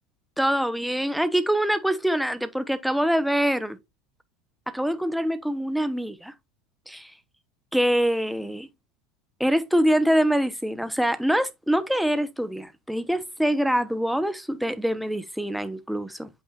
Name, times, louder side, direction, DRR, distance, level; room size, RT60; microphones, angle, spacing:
voice 1, 0.4-3.8 4.7-6.3 6.9-7.1 7.7-8.7 9.4-16.3, equal, ahead, 1.0 m, -24 dB
8.4 x 5.4 x 2.5 m
hypercardioid pair, 85°, 0 cm